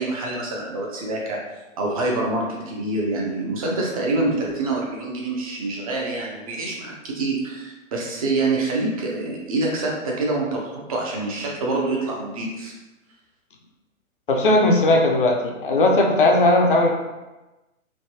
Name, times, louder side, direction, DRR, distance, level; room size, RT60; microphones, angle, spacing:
voice 1, 0.0-1.4 1.8-12.7, right 2 dB, 25° right, -2 dB, 0.5 m, -26 dB
voice 2, 14.3-16.9, left 2 dB, 40° left, 1 dB, 0.5 m, -17 dB
3.3 x 2.8 x 2.7 m, 1.1 s
figure-of-eight pair, 120°, 41 cm